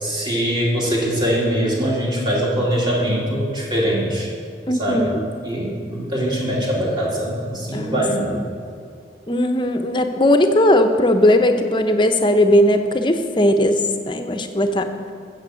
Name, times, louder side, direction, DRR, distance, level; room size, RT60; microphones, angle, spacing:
voice 1, 0.0-4.3 4.8-5.0 5.4-8.5, equal, 25° right, -4 dB, 2.4 m, -22 dB
voice 2, 4.7-5.2 7.7-8.0 9.3-14.9, left 1 dB, 25° left, 7 dB, 0.8 m, -18 dB
14.5 x 7.7 x 6.4 m, 2.3 s
head